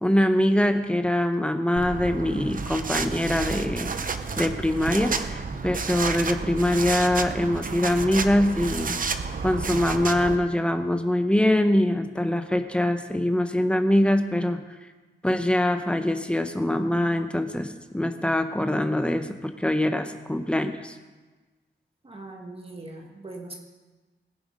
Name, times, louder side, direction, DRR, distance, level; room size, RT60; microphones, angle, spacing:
voice 1, 0.0-3.9 4.4-9.0 9.4-14.6 15.2-20.9, left 1 dB, 5° left, 7 dB, 0.7 m, -23 dB
sound 1, 1.8-10.4, right 4 dB, 45° right, 0.7 m, -30 dB
voice 2, 22.0-23.5, right 2 dB, 30° right, 2 dB, 1.7 m, -40 dB
20.0 x 7.8 x 5.1 m, 1.3 s
wide cardioid pair, 175°, 20 cm